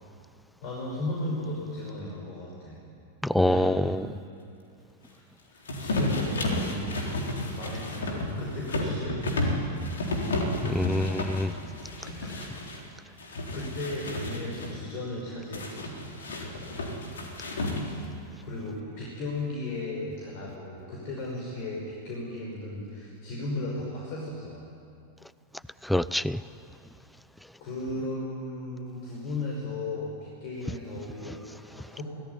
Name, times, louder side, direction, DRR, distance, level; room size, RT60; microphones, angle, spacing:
voice 1, 0.6-2.8 3.3-4.2 5.5-7.1 7.5-9.8 12.8-12.9 13.5-16.1 18.4-24.8 27.6-32.0, left 1 dB, 45° left, 5.5 m, -36 dB
voice 2, 3.3-4.0 10.6-11.5 25.9-26.4, left 1 dB, ahead, 0.5 m, -25 dB
sound 1, 5.7-12.8 13.2-14.7 15.5-18.1, left 2 dB, 65° left, 3.8 m, -32 dB
24.5 x 17.5 x 9.9 m
figure-of-eight pair, 90°, 0 cm